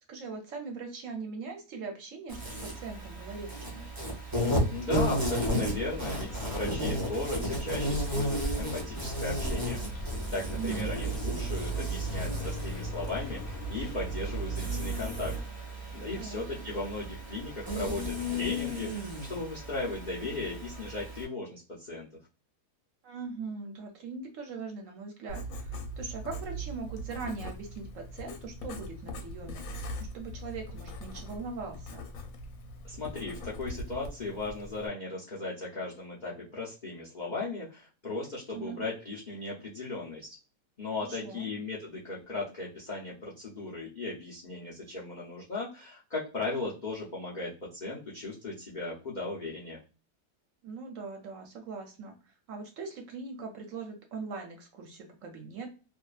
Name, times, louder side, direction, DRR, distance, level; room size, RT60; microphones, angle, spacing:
voice 1, 0.1-3.9 10.5-10.9 16.2-16.4 23.0-32.1 38.5-38.8 41.0-41.5 50.6-52.1 52.5-55.7, right 4 dB, 65° right, 3 dB, 0.8 m, -41 dB
Insect, 2.3-21.2, equal, 25° right, 0.5 m, -34 dB
voice 2, 4.7-15.3 15.9-22.1 32.8-40.4 40.8-49.8, left 3 dB, 90° left, -5 dB, 0.4 m, -37 dB
sound 1, 5.6-15.4, right 3 dB, 50° left, 0.7 m, -37 dB
Writing, 25.3-34.9, equal, 70° left, 0.9 m, -41 dB
2.6 x 2.3 x 2.3 m, 0.34 s
omnidirectional pair, 1.7 m